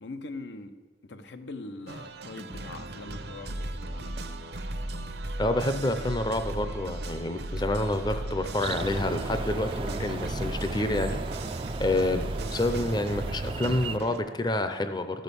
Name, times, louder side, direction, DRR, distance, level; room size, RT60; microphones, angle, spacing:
voice 1, 0.0-4.1, left 2 dB, 85° left, 0.8 m, -42 dB
sound 1, 1.9-14.2, right 1 dB, 65° right, 0.8 m, -36 dB
voice 2, 5.4-11.2 11.8-15.2, left 1 dB, 25° left, 0.6 m, -28 dB
sound 2, 8.6-14.0, right 3 dB, 30° right, 0.4 m, -35 dB
13.0 x 6.3 x 6.9 m
head